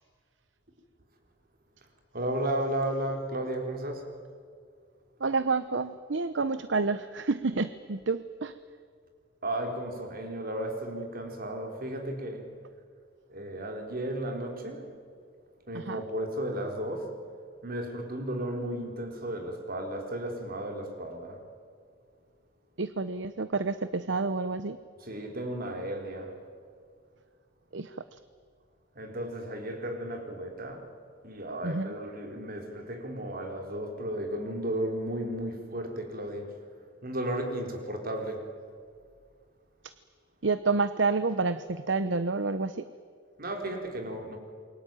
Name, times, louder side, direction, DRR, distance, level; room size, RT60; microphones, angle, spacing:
voice 1, 2.1-4.1 9.4-12.5 13.3-14.9 15.7-17.1 17.6-21.4 25.0-26.4 29.0-30.8 31.2-36.5 37.0-38.5 43.4-44.4, right 1 dB, 50° right, 4 dB, 4.2 m, -34 dB
voice 2, 5.2-8.5 15.7-16.0 22.8-24.8 27.7-27.9 31.6-31.9 40.4-42.8, right 3 dB, 70° right, 13 dB, 0.9 m, -29 dB
28.0 x 23.0 x 9.1 m, 2.1 s
head